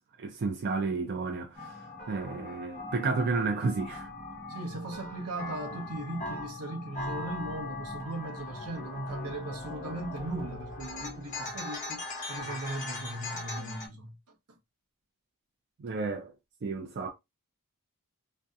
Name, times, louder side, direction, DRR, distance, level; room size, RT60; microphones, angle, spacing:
voice 1, 0.0-4.1 15.8-16.3 16.6-17.1, right 4 dB, 45° right, 0.4 m, -32 dB
sound 1, 1.6-13.9, left 2 dB, 35° left, 1.0 m, -40 dB
voice 2, 4.5-14.6, right 1 dB, 80° right, 0.7 m, -38 dB
2.7 x 2.0 x 2.3 m
head